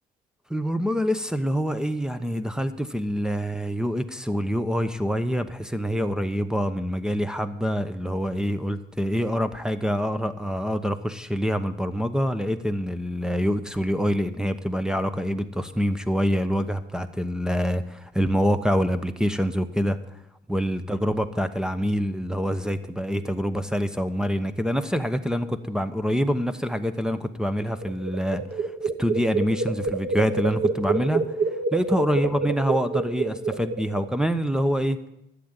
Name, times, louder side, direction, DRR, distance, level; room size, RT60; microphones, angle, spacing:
voice 1, 0.5-20.0 20.5-28.7 29.0-31.2 31.7-35.0, equal, 5° right, 6 dB, 1.0 m, -26 dB
sound 1, 27.6-34.3, right 4 dB, 55° right, 1.9 m, -28 dB
11.5 x 7.9 x 8.9 m, 0.80 s
cardioid pair, 90°, 20 cm